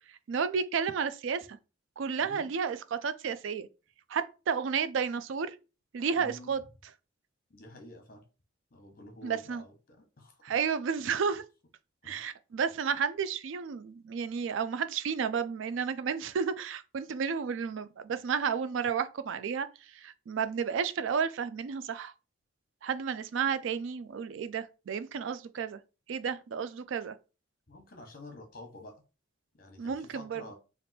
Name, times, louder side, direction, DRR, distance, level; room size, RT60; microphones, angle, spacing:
voice 1, 0.3-1.6 2.0-3.7 4.1-5.5 5.9-6.6 9.2-9.6 10.4-11.4 12.0-22.1 22.8-25.8 26.1-27.2 29.8-30.4, right 6 dB, 75° right, 0.4 m, -32 dB
voice 2, 2.2-2.5 6.2-6.6 7.5-8.2 8.7-10.4 12.0-12.2 27.7-29.0 29.6-30.5, left 1 dB, 50° left, 1.1 m, -49 dB
3.4 x 2.5 x 4.1 m
head